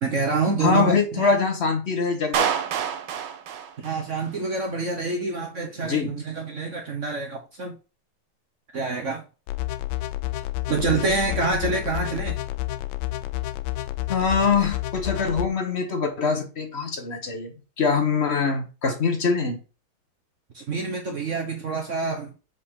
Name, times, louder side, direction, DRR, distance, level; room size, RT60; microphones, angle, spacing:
voice 1, 0.0-1.3 3.8-7.8 8.7-9.2 10.7-12.4 20.5-22.3, right 4 dB, 50° right, 1.0 m, -27 dB
voice 2, 0.6-2.5 5.8-6.1 14.1-19.6, left 5 dB, 40° left, 1.1 m, -23 dB
Clapping, 2.3-4.4, right 8 dB, 75° right, 1.6 m, -27 dB
sound 1, 9.5-15.5, left 16 dB, 75° left, 1.2 m, -30 dB
7.1 x 4.3 x 3.7 m
omnidirectional pair, 2.3 m